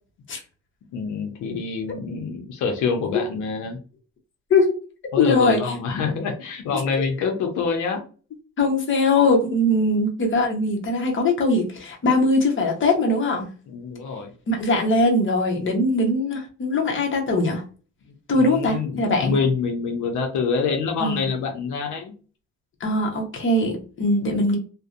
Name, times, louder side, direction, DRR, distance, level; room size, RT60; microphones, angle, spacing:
voice 1, 0.9-3.8 5.1-8.0 13.7-14.3 18.3-22.1, left 5 dB, 80° left, 3 dB, 0.7 m, -26 dB
voice 2, 5.2-5.7 6.7-6.8 8.6-13.5 14.5-17.6 18.3-19.3 21.0-21.2 22.8-24.6, left 2 dB, 40° left, 0 dB, 0.9 m, -21 dB
2.5 x 2.1 x 2.4 m, 0.37 s
cardioid pair, 90°, 30 cm